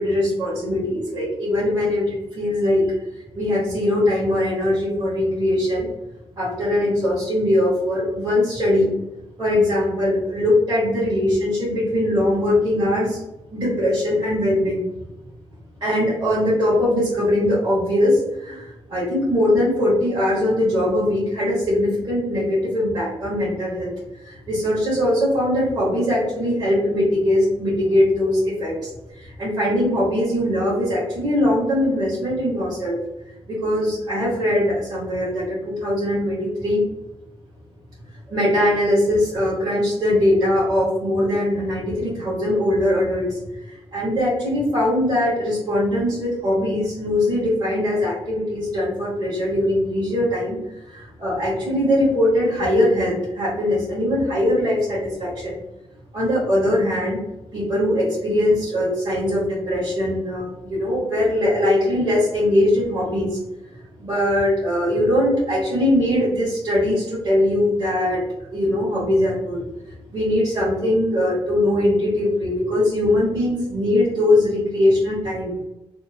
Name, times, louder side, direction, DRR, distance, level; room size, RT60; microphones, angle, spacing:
voice 1, 0.0-2.9 3.3-5.9 6.4-8.9 9.4-13.2 13.5-14.8 15.8-33.0 33.5-36.8 38.3-55.6 56.1-57.2 57.5-63.4 64.0-68.2 68.5-75.5, left 1 dB, 35° right, -11 dB, 1.2 m, -21 dB
2.8 x 2.1 x 2.6 m, 0.95 s
wide cardioid pair, 180°, 11 cm